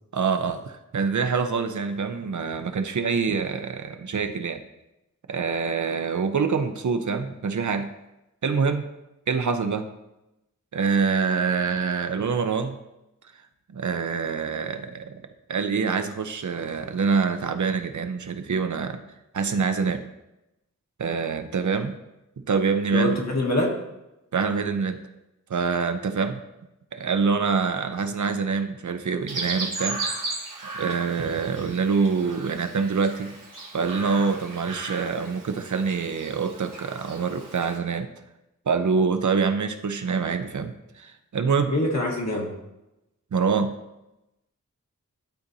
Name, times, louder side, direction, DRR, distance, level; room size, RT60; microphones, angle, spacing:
voice 1, 0.1-4.6 5.3-7.9 8.4-8.8 9.3-9.9 10.7-12.8 13.7-15.2 15.5-19.0 19.3-20.1 21.0-21.9 22.5-23.2 24.3-25.0 25.5-26.4 26.9-30.0 30.6-33.4 33.7-38.1 38.7-41.7 43.3-43.7, right 5 dB, 70° right, 7 dB, 0.6 m, -25 dB
voice 2, 22.9-23.7 41.7-42.5, left 1 dB, 60° left, 0 dB, 1.4 m, -24 dB
Chirp tweet, 29.3-37.8, right 3 dB, 90° right, 1.4 m, -36 dB
11.5 x 4.0 x 2.7 m, 0.93 s
wide cardioid pair, 55°, 31 cm